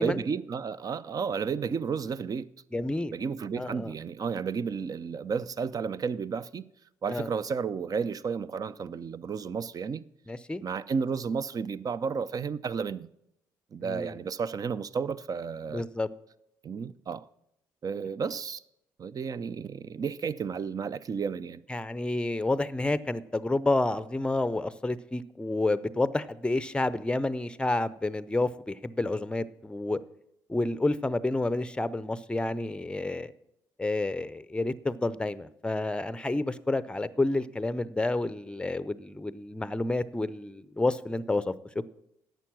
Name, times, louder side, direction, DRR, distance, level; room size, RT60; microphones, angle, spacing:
voice 1, 0.0-2.5 3.1-6.6 7.0-10.0 10.6-13.1 13.7-15.8 16.6-17.3 17.8-18.6 19.0-21.6, right 6 dB, 40° right, 0.5 m, -32 dB
voice 2, 2.7-3.1 3.6-3.9 7.1-7.3 10.3-10.6 13.8-14.2 15.7-16.1 21.7-30.0 30.5-33.3 33.8-41.5, left 2 dB, 10° left, 0.6 m, -29 dB
11.5 x 8.0 x 6.0 m
hypercardioid pair, 50°, 10 cm